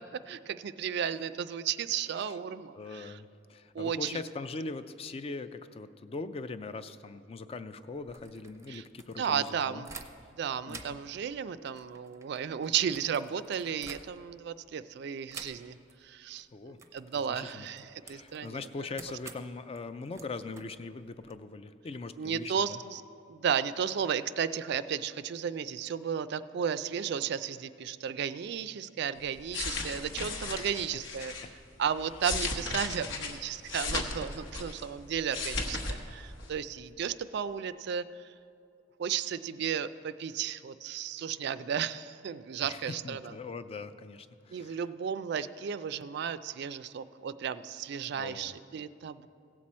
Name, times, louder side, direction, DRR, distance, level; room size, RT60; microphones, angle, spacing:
voice 1, 0.3-3.1 3.7-4.2 8.7-8.8 9.2-10.0 10.4-15.8 16.0-18.7 22.2-23.0 23.3-31.3 31.8-38.2 39.0-43.3 44.5-49.3, right 7 dB, 60° right, 14 dB, 0.3 m, -34 dB
voice 2, 2.8-9.8 10.7-11.0 16.5-16.8 17.1-17.7 18.0-22.8 30.5-30.9 31.4-31.5 42.6-44.8 48.1-48.6, left 3 dB, 30° left, 12 dB, 0.3 m, -41 dB
sound 1, 7.9-10.4 10.6-14.5 15.3-16.4 16.8-21.4, right 4 dB, 15° right, 0.6 m, -50 dB
sound 2, 29.3-31.5 32.0-34.9 35.2-36.0 36.3-36.5, left 3 dB, 70° left, 1.1 m, -35 dB
16.5 x 7.5 x 4.2 m, 2.5 s
head